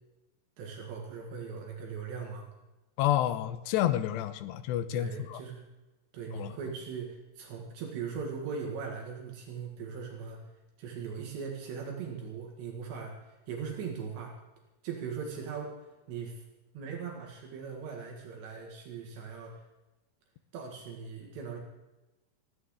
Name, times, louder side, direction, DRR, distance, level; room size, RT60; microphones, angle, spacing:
voice 1, 0.6-2.5 4.9-5.7 6.1-10.4 10.8-14.4 14.8-16.4 16.7-19.6 20.5-21.6, right 6 dB, 75° right, 0 dB, 3.9 m, -39 dB
voice 2, 3.0-5.4 6.3-6.5, left 12 dB, 85° left, 12 dB, 2.8 m, -29 dB
20.5 x 14.5 x 3.7 m, 1.1 s
omnidirectional pair, 5.1 m